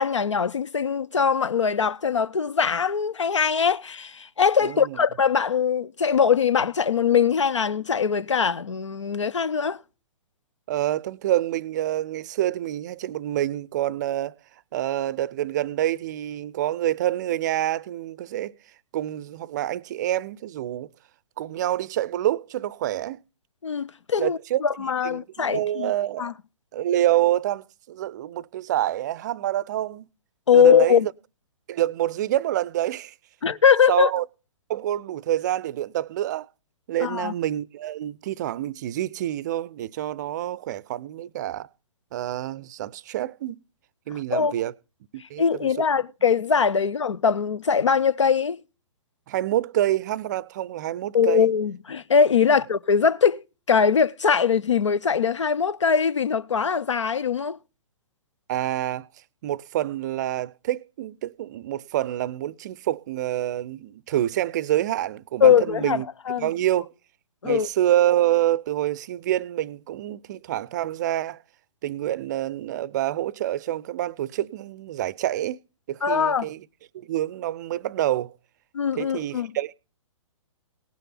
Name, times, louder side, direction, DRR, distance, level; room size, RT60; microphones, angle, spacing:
voice 1, 0.0-9.8 23.6-25.9 26.2-26.3 30.5-31.1 33.4-34.1 37.0-37.3 44.3-44.6 45.4-48.6 51.1-53.4 53.7-57.6 65.4-66.5 67.4-67.7 76.0-76.5 78.7-79.6, left 7 dB, 65° left, 0.8 m, -21 dB
voice 2, 4.6-5.0 10.7-14.4 14.7-18.5 18.9-20.9 21.4-23.2 24.2-24.6 25.0-26.3 26.7-30.0 30.5-31.0 31.7-33.1 33.9-34.2 34.7-36.5 36.9-41.7 42.1-43.6 44.1-44.7 45.1-45.7 49.3-51.5 58.5-59.1 59.4-66.1 66.4-66.9 67.4-71.4 71.8-75.6 75.9-76.6 76.9-78.3 79.0-79.7, right 13 dB, 35° right, 0.5 m, -27 dB
18.5 x 6.6 x 5.7 m
figure-of-eight pair, 120°, 16 cm